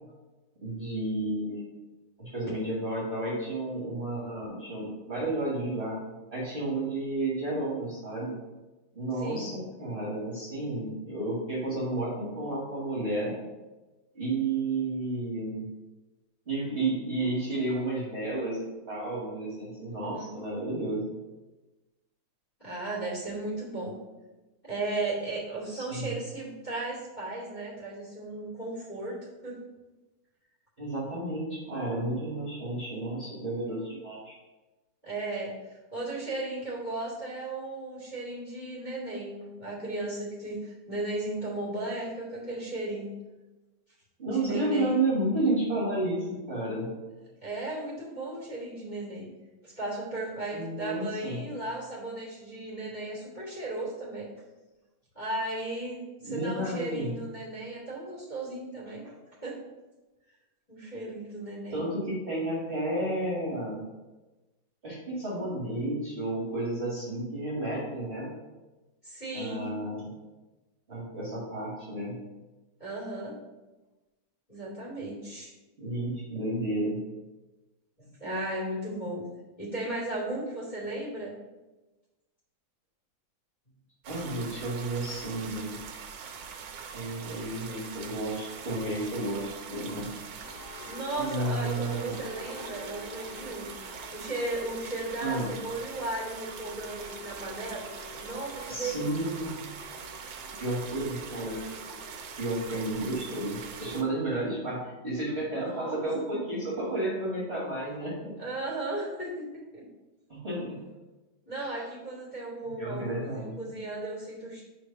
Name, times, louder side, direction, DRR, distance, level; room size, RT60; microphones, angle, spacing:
voice 1, 0.6-1.6 2.2-6.0 6.3-8.4 8.9-13.3 14.1-15.7 16.5-21.0 25.7-26.1 30.8-34.3 44.2-46.9 50.5-51.4 56.2-57.1 61.7-63.8 64.8-68.3 69.3-70.1 70.9-72.2 75.8-77.0 84.1-85.8 86.9-90.4 91.2-92.1 95.2-95.5 98.7-99.6 100.6-101.6 102.4-108.3 110.3-110.8 111.6-111.7 112.6-113.5, right 2 dB, 35° right, -6 dB, 1.6 m, -32 dB
voice 2, 9.2-9.6 20.0-20.3 22.6-24.0 24.6-29.2 29.4-29.5 35.0-43.1 44.2-45.0 47.4-49.3 49.6-54.3 55.1-59.1 59.4-59.6 60.7-61.8 69.0-69.7 72.8-73.4 74.5-75.5 78.0-79.2 79.6-81.3 90.8-93.7 94.1-97.8 98.2-99.1 105.5-106.0 108.4-109.8 111.5-114.6, right 2 dB, 20° left, -4 dB, 2.5 m, -35 dB
sound 1, 84.0-104.0, right 6 dB, 70° right, 1.3 m, -43 dB
sound 2, 90.4-104.7, left 5 dB, 75° left, 1.3 m, -49 dB
5.1 x 4.5 x 5.4 m, 1.1 s
omnidirectional pair, 2.3 m